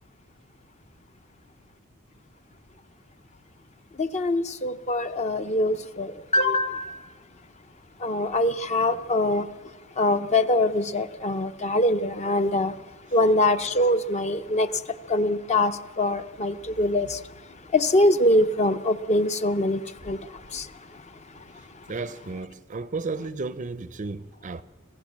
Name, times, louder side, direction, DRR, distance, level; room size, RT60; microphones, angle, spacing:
voice 1, 4.0-7.0 8.0-9.5 10.0-12.7 13.1-14.7 15.1-17.2 17.7-19.8 20.1-20.2 20.5-20.6, left 1 dB, 30° left, 0.6 m, -23 dB
voice 2, 21.9-24.6, right 3 dB, 35° right, 0.5 m, -33 dB
26.0 x 15.5 x 7.4 m
head